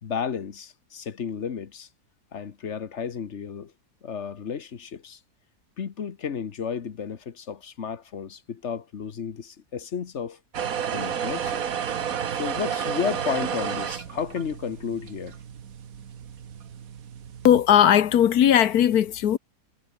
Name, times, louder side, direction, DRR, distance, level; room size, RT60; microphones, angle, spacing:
voice 1, 0.0-1.9 2.3-3.7 4.0-5.2 5.8-10.4 10.9-11.6 12.3-15.4, left 7 dB, 50° left, 1.4 m, -32 dB
sound 1, 10.5-17.6, right 8 dB, 65° right, 1.6 m, -31 dB
voice 2, 17.4-19.4, left 10 dB, 75° left, 1.5 m, -18 dB
omnidirectional pair, 1.7 m